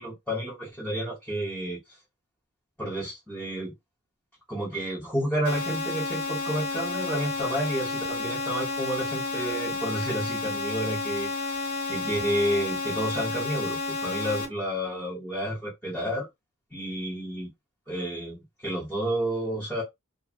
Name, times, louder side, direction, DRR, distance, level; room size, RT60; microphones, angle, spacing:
voice 1, 0.0-1.8 2.8-3.7 4.5-16.3 16.7-17.5 17.9-19.8, equal, 5° left, 1.0 m, -30 dB
sound 1, 5.4-14.4, left 3 dB, 70° left, 1.6 m, -31 dB
2.7 x 2.6 x 2.5 m
head